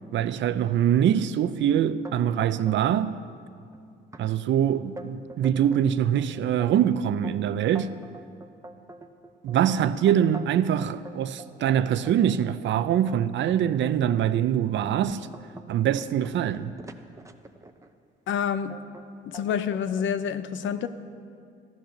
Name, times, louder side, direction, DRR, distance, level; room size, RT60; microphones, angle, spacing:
voice 1, 0.1-3.2 4.2-7.9 9.4-15.3 15.7-16.7, right 10 dB, 70° right, 0.6 m, -24 dB
sound 1, 2.0-3.0 3.2-3.8 4.1-4.2 4.7-5.9 6.3-10.7 11.0-13.6 14.2-14.4 14.8-17.9 18.7-19.1 19.3-20.1, right 2 dB, 15° right, 0.9 m, -45 dB
voice 2, 18.3-18.8 19.3-20.9, left 8 dB, 75° left, 0.7 m, -28 dB
14.0 x 10.5 x 6.5 m
cardioid pair, 90°, 20 cm